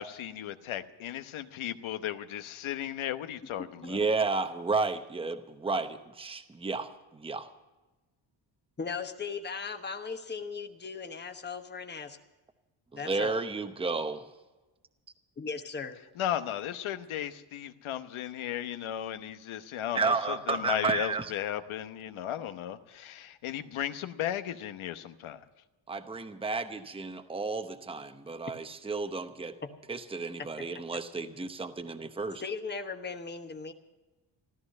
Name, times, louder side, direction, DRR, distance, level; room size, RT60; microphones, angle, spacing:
voice 1, 0.0-4.0 16.2-25.4, left 11 dB, 80° left, 10 dB, 1.1 m, -35 dB
voice 2, 3.8-7.5 12.9-14.3 19.9-21.3 25.9-29.6 29.9-32.4, right 4 dB, 10° right, 8 dB, 0.8 m, -32 dB
voice 3, 8.8-12.2 13.0-13.4 15.4-16.0 29.6-29.7 30.4-30.7 32.4-33.7, left 5 dB, 20° left, 6 dB, 1.1 m, -38 dB
14.5 x 13.0 x 6.5 m, 1.1 s
cardioid pair, 120°, 48 cm